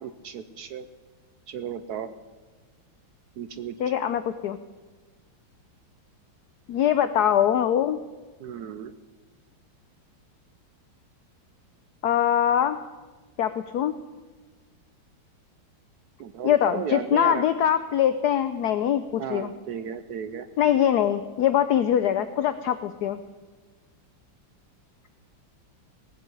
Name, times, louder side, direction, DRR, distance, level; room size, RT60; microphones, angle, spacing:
voice 1, 0.0-0.9 1.5-2.1 3.4-3.8 8.4-9.0 16.2-17.4 19.2-20.5, right 8 dB, 65° right, 11 dB, 1.0 m, -34 dB
voice 2, 3.8-4.6 6.7-8.0 12.0-12.8 13.4-13.9 16.4-19.5 20.6-23.2, left 10 dB, 70° left, 11 dB, 1.0 m, -23 dB
18.5 x 8.2 x 7.8 m, 1.3 s
omnidirectional pair, 2.2 m